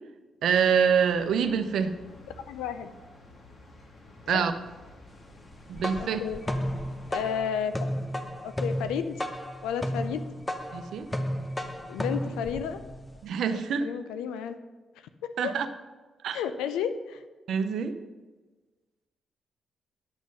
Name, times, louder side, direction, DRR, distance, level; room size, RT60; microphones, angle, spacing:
voice 1, 0.4-1.9 4.3-4.5 5.7-6.2 10.7-11.1 13.2-13.9 15.4-15.7 16.2-16.4 17.5-17.9, right 7 dB, 75° right, 9 dB, 0.7 m, -25 dB
sound 1, 1.0-7.2, left 2 dB, 55° left, 2.2 m, -51 dB
voice 2, 2.5-2.9 4.3-4.4 6.0-6.4 7.1-7.9 8.4-9.2 9.6-10.2 11.9-12.8 13.4-14.6 15.2-15.5 16.3-17.2, left 8 dB, 90° left, 10 dB, 0.5 m, -32 dB
sound 2, 5.5-13.2, equal, 15° left, 0.9 m, -33 dB
9.7 x 6.3 x 5.4 m, 1.3 s
supercardioid pair, 55°, 0 cm